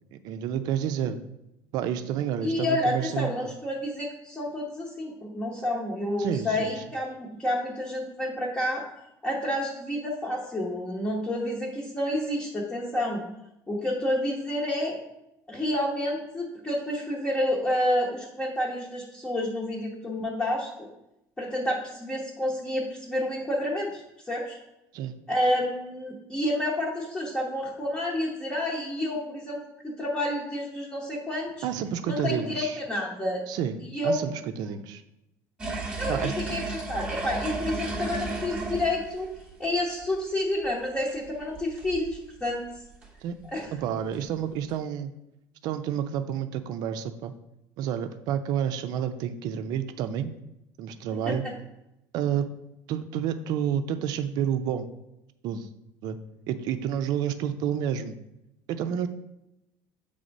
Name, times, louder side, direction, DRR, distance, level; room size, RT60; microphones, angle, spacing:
voice 1, 0.2-1.2 1.7-3.3 6.2-6.7 24.9-25.1 31.6-32.8 33.5-34.3 34.6-35.0 36.1-36.3 43.2-43.4 43.7-45.1 45.6-47.3 47.8-50.3 50.8-51.4 52.1-52.5 52.9-54.9 55.4-55.7 56.0-56.2 56.5-58.2 58.7-59.1, right 9 dB, 60° right, 10 dB, 0.6 m, -29 dB
voice 2, 2.4-8.8 9.2-13.2 13.7-15.0 15.5-20.9 21.4-24.6 25.3-31.7 32.0-33.4 33.8-34.2 36.0-39.3 39.6-42.7 43.4-43.7 51.2-51.5, left 1 dB, 10° left, -4 dB, 1.0 m, -29 dB
sound 1, 35.6-39.7 40.0-40.2 40.6-42.2 42.4-42.6 42.9-43.1 43.4-43.7 44.1-44.2 44.7-44.8, right 2 dB, 15° right, 1.0 m, -34 dB
7.9 x 3.5 x 5.2 m, 0.88 s
cardioid pair, 155°, 8 cm